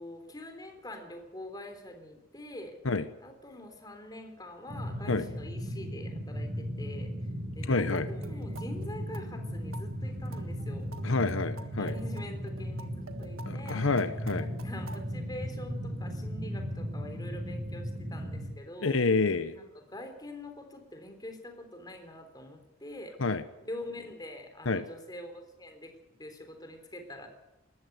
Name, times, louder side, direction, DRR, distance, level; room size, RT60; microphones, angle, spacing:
voice 1, 0.0-2.8 3.2-7.1 7.6-11.3 11.8-12.9 13.2-13.9 14.4-19.0 19.5-23.2 23.6-25.9 26.2-27.3, left 1 dB, 20° left, 5 dB, 3.5 m, -44 dB
sound 1, 4.7-18.5, equal, 40° right, 5.4 m, -36 dB
voice 2, 7.6-8.1 11.0-11.9 13.5-14.5 18.8-19.6 23.2-23.4 24.7-24.8, left 3 dB, 75° left, 11 dB, 1.0 m, -28 dB
sound 2, 7.7-15.2, right 2 dB, 85° right, 1.7 m, -48 dB
20.0 x 14.5 x 9.4 m, 0.98 s
head